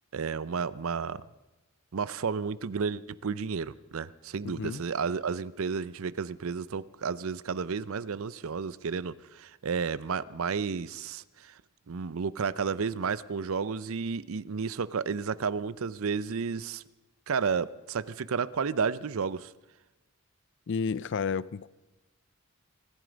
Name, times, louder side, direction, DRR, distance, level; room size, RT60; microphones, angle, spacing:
voice 1, 0.1-1.2 1.9-11.5 11.9-16.8 17.3-19.5, right 5 dB, 70° right, 0.5 m, -32 dB
voice 2, 4.4-4.8 20.7-21.7, left 5 dB, 55° left, 0.4 m, -31 dB
25.0 x 11.0 x 5.1 m
head